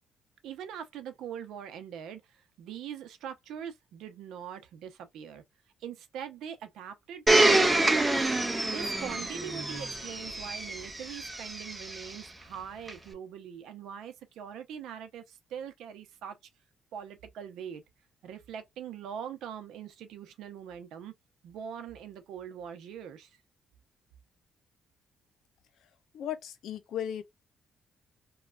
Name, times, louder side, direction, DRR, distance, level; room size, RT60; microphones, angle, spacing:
voice 1, 0.4-5.4 5.8-8.3 8.6-16.4 16.9-17.8 18.2-21.1 21.4-23.4, right 8 dB, 85° right, 0.7 m, -42 dB
Domestic sounds home sounds, 7.3-12.1 12.9-13.0, right 2 dB, 15° right, 0.7 m, -26 dB
voice 2, 26.1-27.2, left 10 dB, 75° left, 0.6 m, -36 dB
3.2 x 2.3 x 2.4 m
cardioid pair, 90°, 0 cm